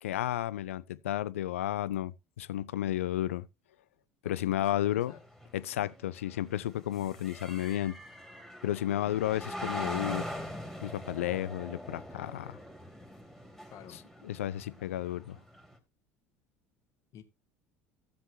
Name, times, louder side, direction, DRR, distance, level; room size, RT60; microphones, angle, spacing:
voice 1, 0.0-3.5 4.2-5.1 5.5-8.0 8.6-10.4 10.8-12.6 14.3-15.4, left 12 dB, 75° left, 0.5 m, -32 dB
voice 2, 4.2-5.2 13.7-14.0 17.1-17.2, left 9 dB, 50° left, 1.5 m, -50 dB
sound 1, 5.1-15.8, equal, ahead, 2.6 m, -42 dB
15.5 x 7.5 x 2.7 m
figure-of-eight pair, 65°, 7 cm